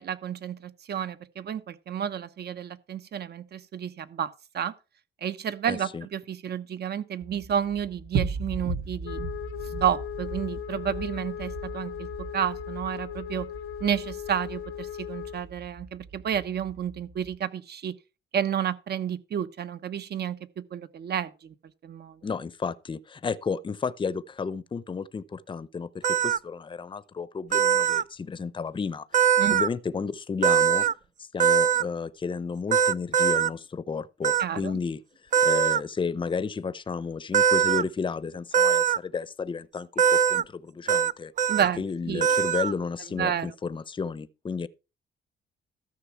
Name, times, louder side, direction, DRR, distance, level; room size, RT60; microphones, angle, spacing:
voice 1, 0.0-4.7 5.2-9.2 9.8-13.5 13.8-18.0 18.3-21.5 21.8-22.2 29.4-29.6 34.4-34.8 41.5-42.2 43.2-43.5, right 9 dB, 55° right, 1.0 m, -31 dB
voice 2, 5.7-6.1 22.2-30.9 31.2-35.0 35.4-41.3 41.8-44.7, left 5 dB, 25° left, 0.6 m, -32 dB
sound 1, 7.2-17.4, right 4 dB, 90° right, 1.9 m, -37 dB
Wind instrument woodwind instrument, 9.0-15.5, left 11 dB, 90° left, 0.6 m, -38 dB
sound 2, 26.0-26.4 27.5-28.0 29.1-29.7 30.4-30.9 31.4-31.8 32.7-33.5 34.2-34.4 35.3-35.8 37.3-37.8 38.5-39.0 40.0-40.4 40.9-41.1 41.4-41.7 42.2-42.7, right 8 dB, 40° right, 0.4 m, -21 dB
13.5 x 6.1 x 4.6 m
cardioid pair, 90°, 20 cm